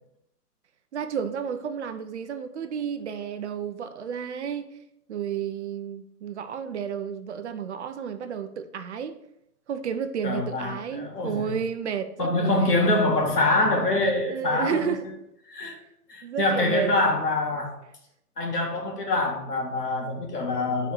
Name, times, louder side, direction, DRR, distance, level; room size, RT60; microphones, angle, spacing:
voice 1, 0.9-4.7 5.1-9.1 9.7-12.8 14.2-15.0 16.2-16.9, right 7 dB, 50° right, 10 dB, 0.7 m, -31 dB
voice 2, 10.2-11.5 12.2-14.9 15.5-15.8 16.1-17.7 18.4-20.9, left 2 dB, 85° left, 1 dB, 2.2 m, -25 dB
7.1 x 4.4 x 4.7 m, 0.77 s
hypercardioid pair, 150°, 46 cm